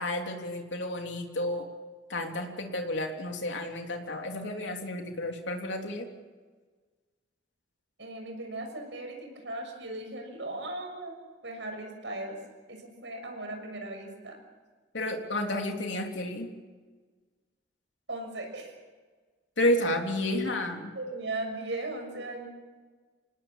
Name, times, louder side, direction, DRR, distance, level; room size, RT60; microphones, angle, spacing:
voice 1, 0.0-1.7 2.1-6.1 14.9-16.5 19.6-20.9, left 1 dB, 80° left, 3 dB, 3.4 m, -31 dB
voice 2, 8.0-12.4 12.7-14.4 18.1-18.8 20.9-22.5, right 2 dB, 75° right, 4 dB, 6.6 m, -38 dB
27.0 x 19.0 x 7.5 m, 1.4 s
head